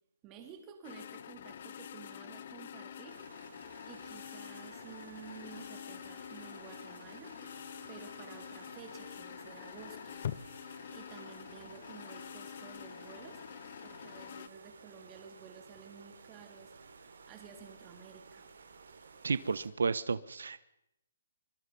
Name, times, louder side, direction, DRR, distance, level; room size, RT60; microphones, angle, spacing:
voice 1, 0.2-3.6 3.8-10.2 10.9-13.5 13.8-18.5, right 7 dB, 15° right, 5 dB, 2.9 m, -53 dB
sound 1, 0.8-14.5, left 9 dB, 35° left, 0.9 m, -46 dB
sound 2, 3.1-19.7, right 5 dB, 60° right, 4.9 m, -55 dB
voice 2, 19.2-20.6, right 5 dB, 75° right, 16 dB, 1.2 m, -32 dB
24.5 x 24.0 x 5.5 m, 0.82 s
hypercardioid pair, 180°, 0 cm